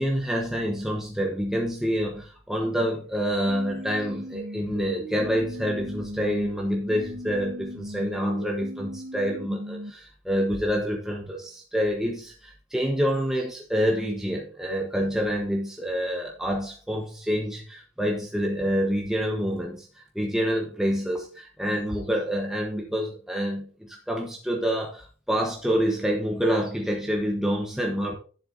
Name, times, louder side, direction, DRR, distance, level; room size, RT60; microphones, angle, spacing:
voice 1, 0.0-28.1, equal, ahead, 0 dB, 1.0 m, -27 dB
sound 1, 3.5-6.5 6.9-9.9, equal, 75° right, 1.3 m, -38 dB
11.0 x 7.8 x 2.6 m, 0.40 s
head